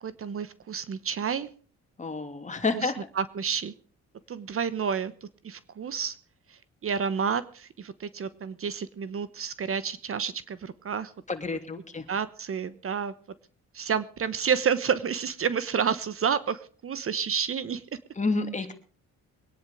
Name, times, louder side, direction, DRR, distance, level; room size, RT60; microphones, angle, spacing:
voice 1, 0.0-1.5 2.7-3.7 4.3-6.1 6.5-11.1 11.5-11.6 12.1-13.1 13.7-17.8, right 7 dB, 45° right, 16 dB, 1.1 m, -30 dB
voice 2, 2.0-3.0 11.3-12.1 18.2-18.7, left 3 dB, 25° left, 6 dB, 3.0 m, -29 dB
23.0 x 10.0 x 5.0 m, 0.41 s
cardioid pair, 90°, 30 cm